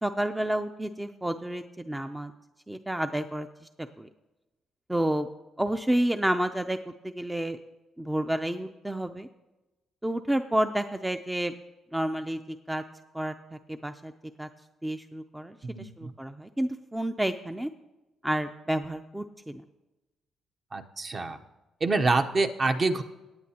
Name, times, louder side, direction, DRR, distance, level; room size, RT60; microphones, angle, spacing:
voice 1, 0.0-2.3 2.7-3.5 4.0-4.1 4.9-5.3 5.6-7.6 8.0-9.3 10.0-11.5 11.9-12.8 13.1-13.3 13.7-14.1 14.4-14.5 14.8-17.7 18.2-19.6, right 1 dB, 10° right, 7 dB, 0.5 m, -30 dB
voice 2, 15.6-16.1 20.7-21.4 21.8-23.0, right 3 dB, 40° right, 6 dB, 0.8 m, -26 dB
17.5 x 8.7 x 2.9 m, 1.0 s
cardioid pair, 90°, 0 cm